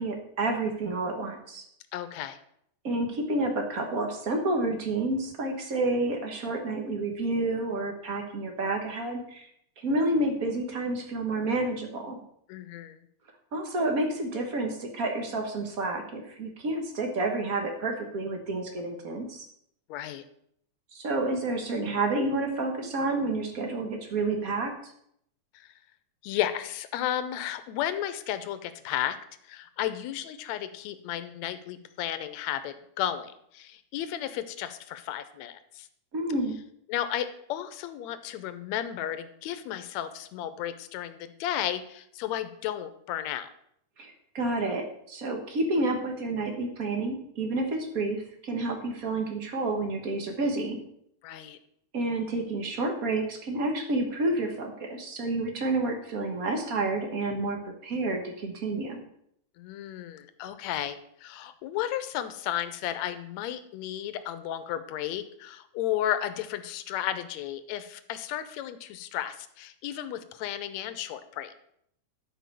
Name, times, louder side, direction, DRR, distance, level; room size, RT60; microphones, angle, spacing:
voice 1, 0.0-1.6 2.8-9.5 9.8-12.2 13.5-19.5 20.9-24.9 36.1-36.6 44.0-50.8 51.9-57.6 57.8-59.0, right 2 dB, 75° right, 3 dB, 0.8 m, -29 dB
voice 2, 1.9-2.4 12.5-13.0 19.9-20.2 25.5-25.7 26.2-29.2 29.4-35.9 36.9-43.5 51.2-51.6 59.6-71.6, left 11 dB, 75° left, 11 dB, 1.8 m, -33 dB
11.5 x 4.8 x 6.7 m, 0.71 s
omnidirectional pair, 3.6 m